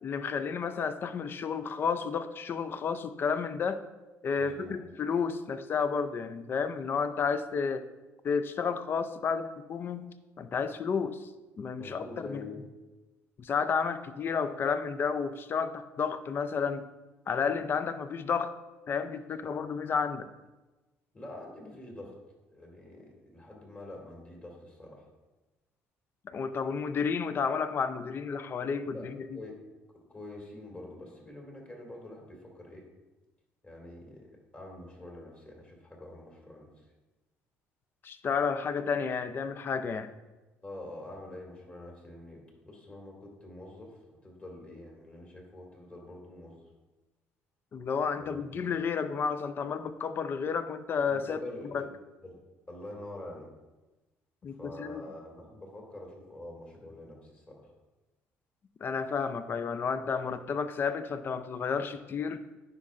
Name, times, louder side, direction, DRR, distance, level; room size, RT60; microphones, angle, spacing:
voice 1, 0.0-3.8 4.2-7.8 8.2-10.1 10.4-11.2 11.6-12.4 13.4-16.8 17.3-18.5 18.9-20.3 26.3-29.4 38.0-40.1 47.7-51.4 51.7-51.8 54.4-55.0 58.8-62.4, left 6 dB, 40° left, 11 dB, 0.5 m, -31 dB
voice 2, 4.4-4.8 11.8-12.6 19.4-19.5 21.1-22.1 22.5-25.1 28.9-29.1 29.3-29.6 30.1-32.9 33.6-36.7 40.6-46.6 48.2-48.7 51.1-51.9 52.2-52.4 52.7-53.5 54.6-57.7, left 1 dB, 25° left, 0 dB, 2.0 m, -46 dB
9.7 x 5.3 x 2.4 m, 1.1 s
supercardioid pair, 90°, 5 cm